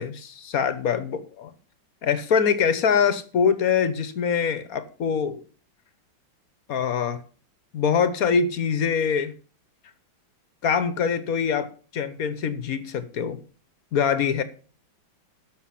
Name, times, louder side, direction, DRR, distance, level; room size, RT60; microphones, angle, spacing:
voice 1, 0.0-1.5 2.0-5.4 6.7-7.2 7.7-9.3 10.6-13.4 13.9-14.4, left 6 dB, 55° left, 1.3 m, -24 dB
13.5 x 6.4 x 5.8 m
omnidirectional pair, 2.1 m